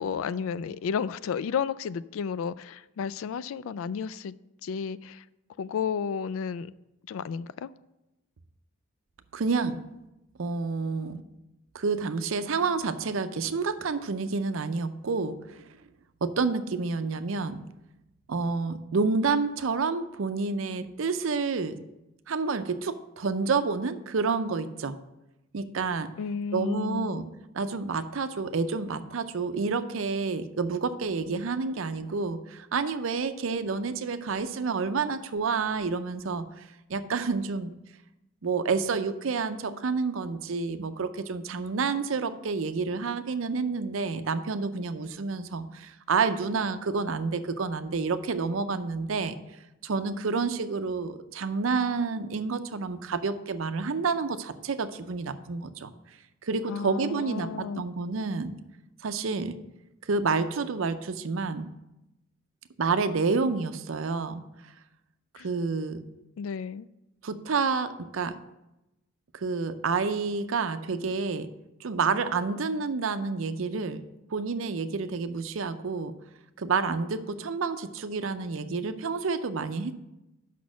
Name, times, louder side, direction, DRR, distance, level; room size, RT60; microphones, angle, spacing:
voice 1, 0.0-4.3 4.6-5.2 5.6-6.7 7.1-7.7 26.2-27.2 56.7-57.9 65.4-65.5 66.1-66.9, left 6 dB, 80° left, 17 dB, 0.3 m, -32 dB
voice 2, 9.3-9.8 10.4-11.2 11.7-15.6 16.2-17.6 18.3-21.8 22.3-25.0 25.5-26.1 26.5-27.2 27.5-36.6 36.9-37.7 38.4-49.4 49.8-55.9 56.4-58.5 59.0-59.5 60.1-61.7 62.8-64.4 65.4-66.0 67.2-68.3 69.3-71.5 71.8-74.0 74.3-76.1 76.6-80.0, right 4 dB, 75° right, 11 dB, 0.5 m, -29 dB
6.3 x 5.8 x 6.2 m, 0.93 s
head